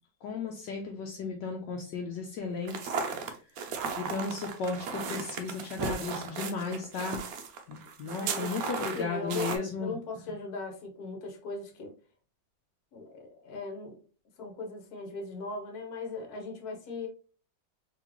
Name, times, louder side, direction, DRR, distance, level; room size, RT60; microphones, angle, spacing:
voice 1, 0.2-3.0 4.0-7.2 7.7-9.9, left 4 dB, 75° left, 1 dB, 1.2 m, -35 dB
sound 1, 2.6-9.6, right 5 dB, 65° right, 0.9 m, -35 dB
voice 2, 8.2-11.9 12.9-14.0 14.4-17.1, left 3 dB, 55° left, 3 dB, 1.3 m, -38 dB
3.8 x 3.3 x 2.9 m, 0.37 s
omnidirectional pair, 2.1 m